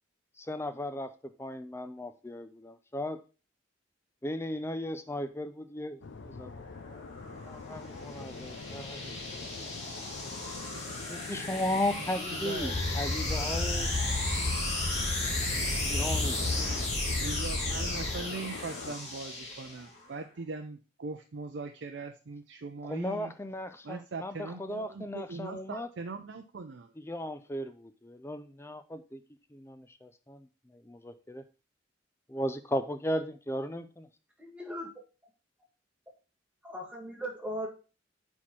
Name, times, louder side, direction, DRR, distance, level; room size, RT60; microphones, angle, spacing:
voice 1, 0.4-1.1 1.4-3.2 4.2-7.0 7.4-9.8 11.1-13.9 15.8-16.4 22.8-25.9 27.0-29.2 29.5-30.5 30.7-31.4 32.3-34.1, left 1 dB, 15° left, 10 dB, 0.5 m, -36 dB
sound 1, 6.0-19.0, left 4 dB, 75° left, 0.5 m, -45 dB
sound 2, 6.7-20.1, left 2 dB, 35° left, 2.0 m, -36 dB
voice 2, 12.3-12.7 13.4-13.5 17.2-23.3 23.8-26.9, right 3 dB, 70° right, 4 dB, 0.5 m, -41 dB
sound 3, 12.6-18.2, left 2 dB, 60° left, 1.4 m, -33 dB
voice 3, 34.4-34.9 36.6-37.7, equal, 5° right, -1 dB, 1.6 m, -38 dB
4.7 x 4.3 x 5.7 m, 0.33 s
head